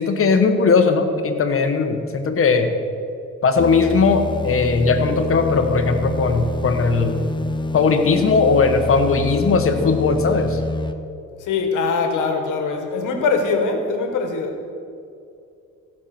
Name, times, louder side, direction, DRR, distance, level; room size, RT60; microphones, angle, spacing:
voice 1, 0.0-2.7 3.4-7.2 7.7-10.6, left 4 dB, 45° left, 6 dB, 1.4 m, -18 dB
sound 1, 3.6-10.9, left 2 dB, 15° left, 0.7 m, -27 dB
voice 2, 11.4-14.6, left 4 dB, 85° left, 4 dB, 1.8 m, -22 dB
16.0 x 6.1 x 6.1 m, 2.5 s
cardioid pair, 90°, 30 cm